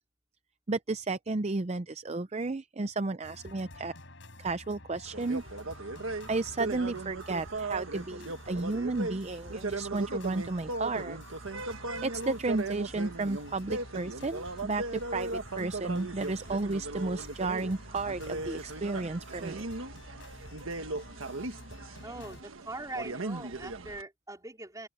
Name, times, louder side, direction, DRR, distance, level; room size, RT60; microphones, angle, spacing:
voice 1, 0.7-3.9 4.4-5.4 6.3-11.2 12.0-14.8 15.1-19.6, right 3 dB, 30° right, 0.5 m, -33 dB
sound 1, 3.2-22.4, left 1 dB, 70° left, 5.2 m, -49 dB
sound 2, 5.1-24.0, right 2 dB, 85° right, 1.5 m, -38 dB
voice 2, 22.0-24.9, right 2 dB, 15° right, 4.4 m, -42 dB
open air
head